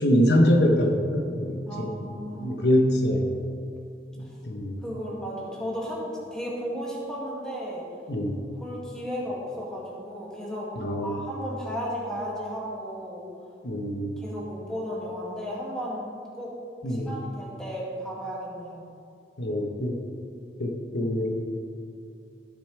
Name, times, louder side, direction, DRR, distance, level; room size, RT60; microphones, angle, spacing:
voice 1, 0.0-1.9 2.4-3.3 4.2-4.7 8.1-8.4 10.8-11.2 13.6-14.2 16.8-17.2 19.4-20.0 20.6-21.6, equal, 75° left, 2 dB, 1.0 m, -24 dB
voice 2, 1.7-2.6 4.2-4.4 4.8-7.8 8.6-10.7 11.0-13.2 14.2-16.5 16.9-18.8, equal, 5° left, -6 dB, 2.2 m, -34 dB
16.5 x 7.1 x 3.3 m, 2.5 s
head